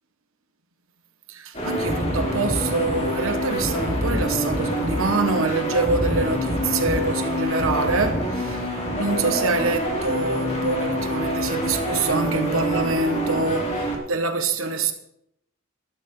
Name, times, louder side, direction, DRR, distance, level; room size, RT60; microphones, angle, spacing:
voice 1, 1.3-14.9, right 3 dB, 85° right, 1.4 m, -25 dB
sound 1, 1.5-14.0, equal, 30° left, 3.5 m, -26 dB
15.5 x 12.5 x 3.9 m
head